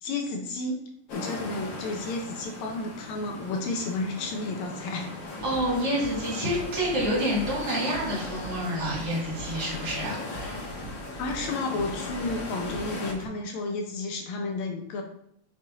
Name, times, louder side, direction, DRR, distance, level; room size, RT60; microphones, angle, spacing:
voice 1, 0.0-0.8 1.1-5.1 11.2-15.0, left 3 dB, 75° left, 2 dB, 2.2 m, -32 dB
sound 1, 1.1-13.1, left 2 dB, 50° left, 1.6 m, -38 dB
sound 2, 5.2-13.3, right 1 dB, 5° right, 2.2 m, -43 dB
voice 2, 5.4-10.7, equal, 55° right, -5 dB, 3.2 m, -28 dB
6.4 x 4.2 x 5.1 m, 0.72 s
omnidirectional pair, 3.3 m